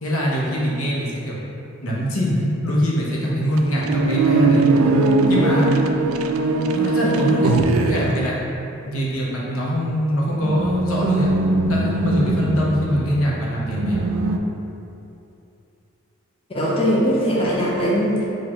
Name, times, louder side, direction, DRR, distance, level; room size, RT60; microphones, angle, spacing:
voice 1, 0.0-1.4 1.8-4.7 5.3-5.8 6.7-7.6 7.9-8.3 8.8-11.3 11.7-14.0, equal, 80° left, -5 dB, 0.9 m, -23 dB
sound 1, 3.6-8.7 9.6-9.7 10.4-14.4, right 3 dB, 80° right, 0.3 m, -20 dB
voice 2, 16.5-18.2, equal, 25° left, -5 dB, 0.4 m, -20 dB
4.2 x 2.5 x 4.3 m, 2.8 s
head